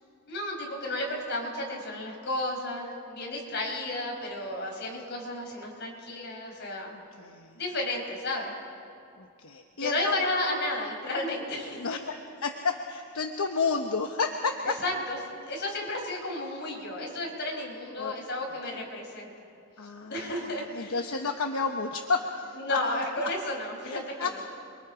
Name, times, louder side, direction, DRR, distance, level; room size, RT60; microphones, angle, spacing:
voice 1, 0.3-6.9 7.6-8.6 9.8-12.0 14.6-15.2 15.4-19.3 20.1-21.0 22.6-24.4, left 1 dB, 50° left, 0 dB, 5.1 m, -32 dB
voice 2, 7.2-7.5 9.2-10.2 11.8-14.8 18.0-18.1 19.8-20.3 20.7-22.8 23.8-24.4, left 4 dB, 75° left, 4 dB, 1.1 m, -31 dB
28.5 x 23.0 x 5.0 m, 2.6 s
head